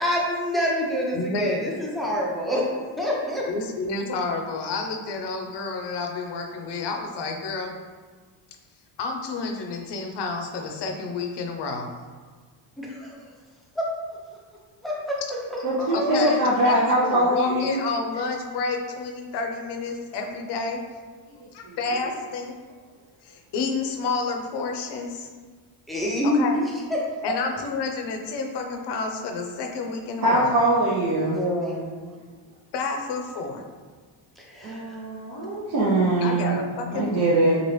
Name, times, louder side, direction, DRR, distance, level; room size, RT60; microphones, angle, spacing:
voice 1, 0.0-2.7 3.0-3.4 12.8-13.2 13.8-13.9 14.8-15.1 15.7-16.3 25.9-26.6 31.1-32.1 34.4-35.0, left 1 dB, ahead, -5 dB, 0.5 m, -27 dB
voice 2, 1.1-1.6 3.5-7.8 9.0-11.9 15.9-16.4 16.6-16.7 17.0-20.8 21.5-22.5 23.2-25.3 26.2-26.6 27.2-30.5 32.7-33.6 36.2-37.3, left 3 dB, 60° left, 3 dB, 0.6 m, -30 dB
voice 3, 15.6-17.8 21.6-21.8 30.2-31.4 34.6-37.6, right 1 dB, 45° right, -7 dB, 0.7 m, -22 dB
3.0 x 2.5 x 3.1 m, 1.5 s
cardioid pair, 130°, 46 cm